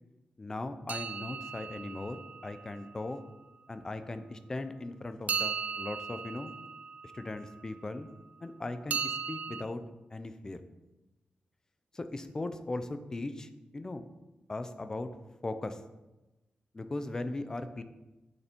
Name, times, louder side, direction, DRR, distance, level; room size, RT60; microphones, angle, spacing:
voice 1, 0.4-3.2 3.7-6.5 7.1-8.1 8.4-9.8 10.1-10.6 11.9-14.0 14.5-15.1 15.4-15.8 16.7-17.8, left 2 dB, 20° left, 10 dB, 0.5 m, -38 dB
sound 1, 0.9-2.9 5.3-7.7 8.9-9.6, right 6 dB, 55° right, 0.4 m, -37 dB
8.5 x 6.9 x 4.4 m, 1.0 s
wide cardioid pair, 180°, 3 cm